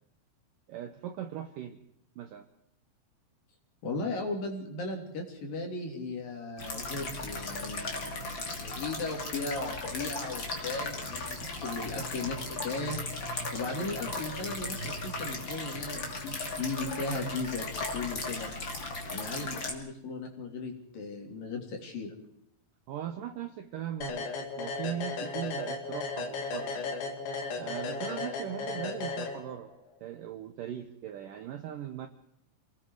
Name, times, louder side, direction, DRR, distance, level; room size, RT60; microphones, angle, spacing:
voice 1, 0.7-1.8 2.2-2.5 22.9-24.3 24.6-26.8 27.6-29.7 30.0-32.1, right 10 dB, 75° right, 7 dB, 2.0 m, -39 dB
voice 2, 3.8-13.0 13.5-18.5 19.1-22.1, left 3 dB, 55° left, 2 dB, 4.4 m, -37 dB
sound 1, 6.6-19.7, left 2 dB, 30° left, 2.7 m, -37 dB
sound 2, 24.0-29.8, left 4 dB, 90° left, 4.6 m, -35 dB
28.5 x 19.5 x 4.8 m, 0.73 s
omnidirectional pair, 5.0 m